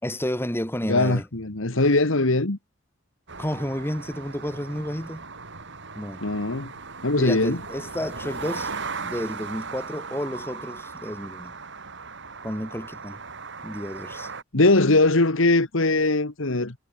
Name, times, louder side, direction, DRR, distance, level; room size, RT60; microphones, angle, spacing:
voice 1, 0.0-1.2 3.4-5.3 6.0-6.3 7.2-8.7 9.0-11.5 12.4-13.2 13.6-14.3, equal, 10° left, 5.1 m, -31 dB
voice 2, 0.9-2.6 6.2-6.7 7.0-7.6 14.5-16.7, left 2 dB, 70° left, 1.8 m, -21 dB
sound 1, 3.3-14.4, right 4 dB, 65° right, 5.4 m, -37 dB
head